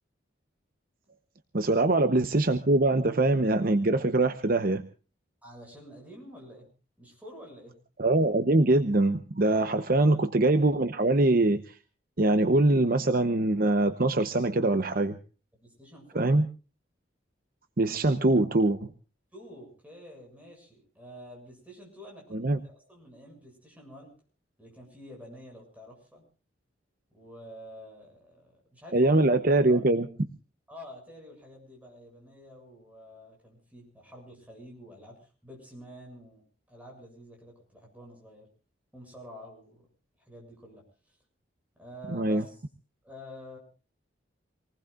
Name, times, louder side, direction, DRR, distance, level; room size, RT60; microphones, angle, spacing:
voice 1, 1.5-4.8 8.0-11.6 12.2-15.2 16.1-16.4 17.8-18.9 22.3-22.6 28.9-30.1 42.1-42.4, right 2 dB, 50° right, 9 dB, 0.9 m, -23 dB
voice 2, 5.4-6.7 7.0-7.7 9.9-10.2 15.5-16.4 19.3-24.1 24.6-26.2 27.1-29.1 29.7-29.8 30.7-36.4 36.7-38.5 38.9-39.9 40.3-40.8 41.8-42.6 43.0-43.6, equal, 10° right, 0 dB, 7.1 m, -48 dB
27.0 x 19.5 x 2.5 m, 0.35 s
head